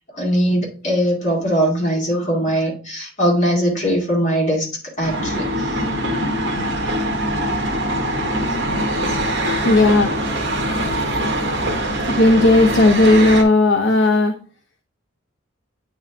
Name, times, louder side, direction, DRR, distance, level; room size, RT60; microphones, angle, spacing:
voice 1, 0.1-4.7 5.0-5.8 9.1-9.2, equal, 35° left, -2 dB, 1.9 m, -20 dB
sound 1, 5.0-13.4, right 1 dB, 65° right, 1.2 m, -22 dB
voice 2, 9.6-10.3 10.8-11.0 12.1-14.3, left 2 dB, 55° left, 3 dB, 0.6 m, -15 dB
8.6 x 3.6 x 3.3 m, 0.40 s
head